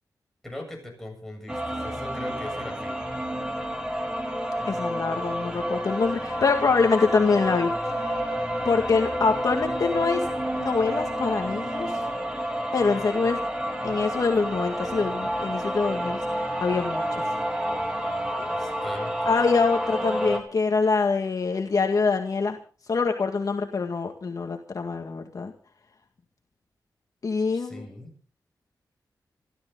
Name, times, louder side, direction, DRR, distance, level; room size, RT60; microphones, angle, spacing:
voice 1, 0.4-3.0 18.4-19.3 27.5-28.1, left 1 dB, 5° left, 1 dB, 7.5 m, -40 dB
sound 1, 1.5-20.4, equal, 10° right, 3.5 m, -29 dB
voice 2, 4.7-7.7 8.0-8.1 8.7-10.2 10.5-11.9 12.7-13.4 13.8-17.0 19.3-22.6 22.9-25.5 27.2-27.9, left 4 dB, 55° left, 4 dB, 1.9 m, -25 dB
27.5 x 13.0 x 3.9 m, 0.41 s
wide cardioid pair, 110°, 7 cm